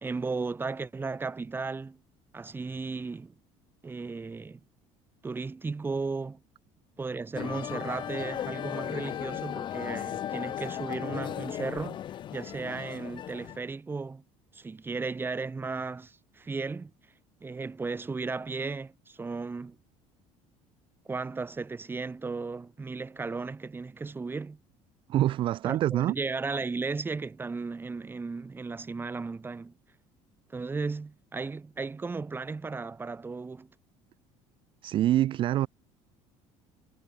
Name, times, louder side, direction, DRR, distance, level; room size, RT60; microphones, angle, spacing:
voice 1, 0.0-2.0 2.3-3.3 3.8-4.6 5.2-6.4 7.0-12.0 12.3-14.2 14.5-16.9 17.4-19.7 21.1-24.6 25.6-29.7 30.5-33.7, right 4 dB, 15° right, 1.3 m, -35 dB
sound 1, 7.3-13.6, left 11 dB, 35° left, 0.5 m, -36 dB
voice 2, 25.1-26.1 34.8-35.7, right 13 dB, 40° right, 0.3 m, -25 dB
cardioid pair, 125°, 13 cm